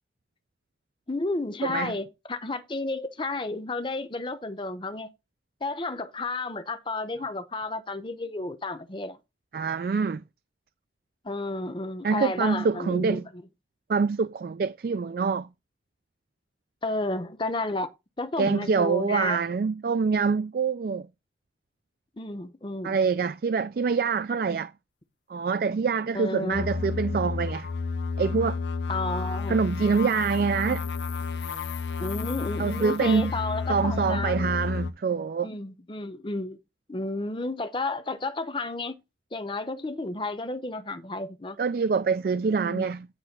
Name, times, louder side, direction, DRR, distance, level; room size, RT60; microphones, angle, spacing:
voice 1, 1.1-5.1 5.6-9.2 11.2-13.4 16.8-17.9 18.2-19.4 22.2-23.0 26.1-26.7 28.9-29.6 32.0-34.4 35.4-36.6 36.9-39.0 39.3-41.6 42.6-42.9, left 2 dB, 25° left, 0.8 m, -32 dB
voice 2, 1.6-2.0 9.5-10.2 12.0-13.3 13.9-15.5 18.4-21.1 22.8-24.7 25.3-27.7 28.2-28.6 29.5-30.9 32.6-33.3 33.7-35.5 41.6-43.1, right 5 dB, 55° right, 0.3 m, -25 dB
sound 1, 26.5-34.9, left 4 dB, 75° left, 0.6 m, -31 dB
9.7 x 3.3 x 5.9 m
head